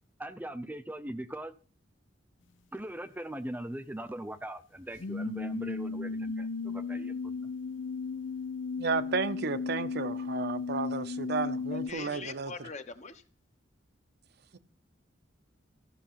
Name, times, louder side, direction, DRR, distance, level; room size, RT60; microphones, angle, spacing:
voice 1, 0.2-1.5 2.7-7.3, right 1 dB, 10° right, 0.6 m, -40 dB
sound 1, 5.0-11.9, left 4 dB, 75° left, 0.6 m, -35 dB
voice 2, 8.8-12.5 14.5-14.6, right 4 dB, 60° right, 0.8 m, -33 dB
voice 3, 11.7-13.2, left 4 dB, 40° left, 1.1 m, -42 dB
14.0 x 6.5 x 5.8 m
head